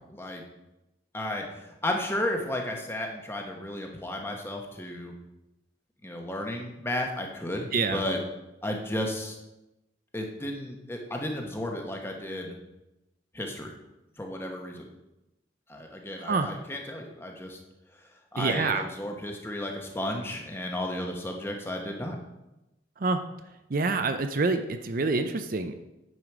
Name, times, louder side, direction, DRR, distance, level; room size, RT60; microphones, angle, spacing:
voice 1, 0.1-0.4 1.1-5.1 6.0-8.2 8.6-9.3 10.1-12.5 13.3-13.7 14.2-14.9 15.7-17.6 18.3-22.2, left 1 dB, 15° left, 2 dB, 1.1 m, -33 dB
voice 2, 16.2-16.5 18.4-18.9 23.0-23.2 23.7-25.7, right 3 dB, 50° right, 8 dB, 0.5 m, -26 dB
9.5 x 5.1 x 6.0 m, 0.96 s
head